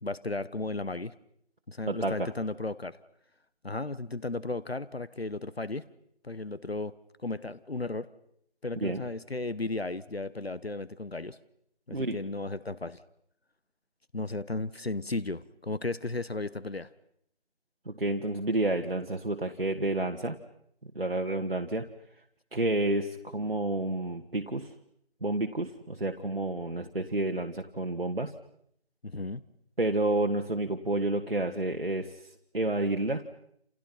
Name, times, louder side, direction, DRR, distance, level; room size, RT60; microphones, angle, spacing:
voice 1, 0.0-1.1 1.7-3.0 3.6-5.9 6.2-7.0 7.2-8.1 8.6-11.4 11.9-13.0 14.1-16.9 29.0-29.4, left 2 dB, 65° left, 16 dB, 1.1 m, -34 dB
voice 2, 1.9-2.3 8.8-9.0 11.9-12.2 17.9-20.4 20.8-21.9 22.5-24.7 25.2-28.3 29.8-32.2 32.5-33.2, right 2 dB, 60° right, 3 dB, 1.7 m, -30 dB
29.0 x 28.5 x 5.8 m, 0.72 s
figure-of-eight pair, 170°, 33 cm